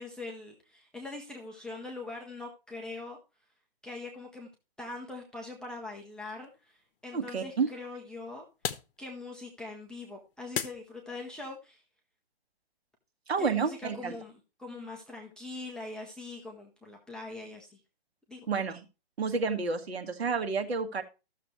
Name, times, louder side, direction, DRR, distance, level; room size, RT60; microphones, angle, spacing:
voice 1, 0.0-3.2 3.8-4.5 4.8-8.4 9.0-11.8 13.4-14.3 14.6-17.8 18.3-18.5, left 2 dB, ahead, -1 dB, 0.7 m, -42 dB
sound 1, 5.4-11.4, left 8 dB, 60° left, 1.1 m, -43 dB
voice 2, 7.1-7.7 13.3-14.2 18.5-18.8 19.2-21.0, right 5 dB, 80° right, 6 dB, 1.7 m, -30 dB
14.5 x 6.7 x 3.1 m, 0.29 s
hypercardioid pair, 145°, 31 cm